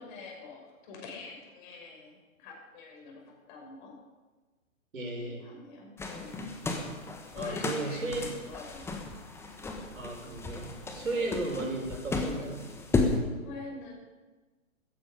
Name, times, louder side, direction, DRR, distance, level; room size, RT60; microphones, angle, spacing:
voice 1, 0.0-4.0 5.2-6.5 7.3-9.1 10.9-11.4 13.4-13.9, left 4 dB, 35° left, 0 dB, 6.3 m, -46 dB
voice 2, 4.9-5.4 7.4-8.2 9.9-12.6, right 2 dB, 75° right, 0 dB, 5.7 m, -35 dB
sound 1, 6.0-13.2, left 3 dB, 5° left, 1.3 m, -34 dB
16.0 x 14.5 x 5.2 m, 1.2 s
figure-of-eight pair, 130°, 41 cm